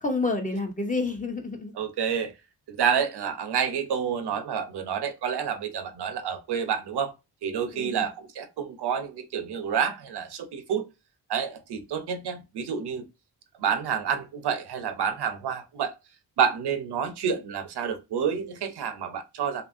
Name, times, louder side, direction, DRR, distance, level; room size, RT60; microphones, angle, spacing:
voice 1, 0.0-1.7 7.7-8.0, left 3 dB, 20° left, 0.8 m, -29 dB
voice 2, 1.8-2.3 2.7-7.1 7.4-10.8 11.3-13.1 13.6-15.9 16.4-19.6, right 7 dB, 80° right, 0.6 m, -29 dB
2.7 x 2.5 x 2.4 m
cardioid pair, 85°, 40 cm